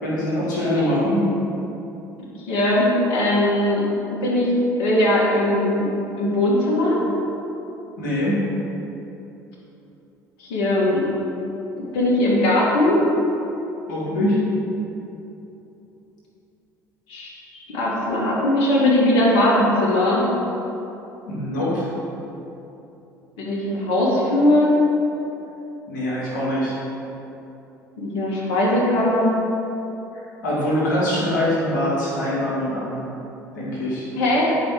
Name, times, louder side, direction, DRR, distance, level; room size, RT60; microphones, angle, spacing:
voice 1, 0.0-1.2 8.0-8.4 13.9-14.4 21.3-21.9 25.9-26.8 30.4-33.0 33.6-34.1, left 1 dB, 80° left, -7 dB, 2.0 m, -23 dB
voice 2, 2.5-3.8 4.1-4.5 4.8-5.9 6.2-7.0 10.4-11.1 11.8-13.0 17.1-17.3 17.7-20.2 23.4-24.7 28.0-29.4 34.2-34.5, left 1 dB, 60° left, -5 dB, 1.9 m, -19 dB
10.0 x 5.1 x 4.7 m, 2.9 s
figure-of-eight pair, 60°, 10 cm